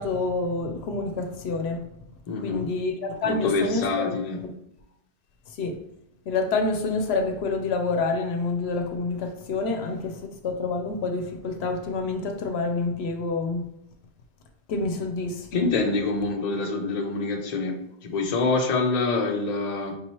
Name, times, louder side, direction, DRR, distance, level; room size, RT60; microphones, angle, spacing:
voice 1, 0.0-1.8 2.4-4.1 4.4-4.5 5.5-5.8 6.3-13.6 14.7-15.7, left 3 dB, 75° left, 0.8 m, -28 dB
voice 2, 2.3-2.7 3.2-4.4 15.5-17.7 18.0-19.9, left 3 dB, 45° left, 0.6 m, -26 dB
5.3 x 3.0 x 2.9 m
omnidirectional pair, 1.1 m